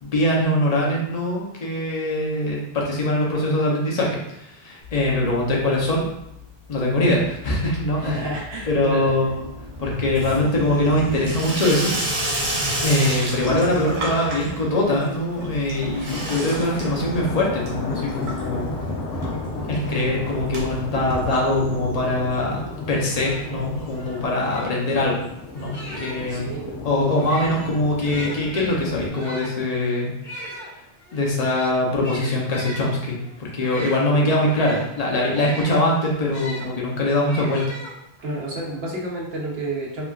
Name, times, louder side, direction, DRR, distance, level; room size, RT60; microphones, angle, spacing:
voice 1, 0.0-6.1 6.7-8.2 8.7-9.4 9.8-11.9 12.8-18.7 19.7-25.1 25.5-26.5 26.8-30.1 31.1-37.6, left 1 dB, 45° left, -3 dB, 0.6 m, -22 dB
Water tap faucet / Sink (filling or washing), 4.8-5.6 5.9-6.4 6.7-22.0 22.3-22.4 22.6-22.7 22.9-23.0 24.1-24.2, right 1 dB, 40° right, 0.6 m, -31 dB
voice 2, 8.0-9.1 25.9-26.0 26.3-26.8 27.2-27.3 34.0-34.5 35.3-35.6 38.2-40.1, right 1 dB, 65° right, -3 dB, 0.9 m, -30 dB
sound 1, 15.7-29.1, left 3 dB, 90° left, 1.0 m, -33 dB
sound 2, 23.1-26.4 27.1-36.7 37.2-38.3, equal, 70° left, 1.2 m, -38 dB
3.0 x 2.3 x 2.3 m, 0.80 s
omnidirectional pair, 1.2 m